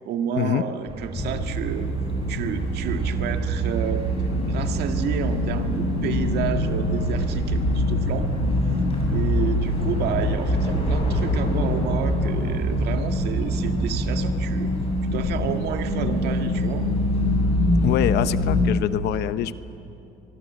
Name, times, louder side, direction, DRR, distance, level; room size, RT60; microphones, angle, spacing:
voice 1, 0.1-1.9 2.3-4.1 4.5-8.3 9.1-14.7 15.0-16.9, right 8 dB, 75° right, 6 dB, 1.8 m, -30 dB
sound 1, 0.9-11.5, right 3 dB, 35° right, 1.8 m, -38 dB
sound 2, 1.1-18.6, equal, 35° left, 6.9 m, -24 dB
voice 2, 17.8-19.6, left 11 dB, 80° left, 13 dB, 0.9 m, -24 dB
24.5 x 22.5 x 7.9 m, 2.8 s
cardioid pair, 110°, 17 cm